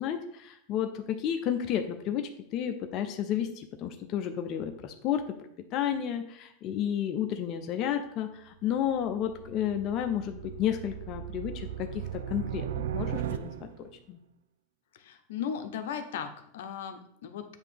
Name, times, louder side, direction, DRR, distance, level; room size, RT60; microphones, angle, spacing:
voice 1, 0.0-5.2 5.7-12.7 12.9-13.7 14.1-14.2, left 9 dB, 45° left, 6 dB, 0.6 m, -31 dB
sound 1, 8.7-13.9, right 10 dB, 85° right, 0.4 m, -37 dB
voice 2, 14.9-17.4, left 8 dB, 75° left, 8 dB, 0.7 m, -37 dB
8.1 x 2.8 x 5.3 m, 0.74 s
supercardioid pair, 125°, 0 cm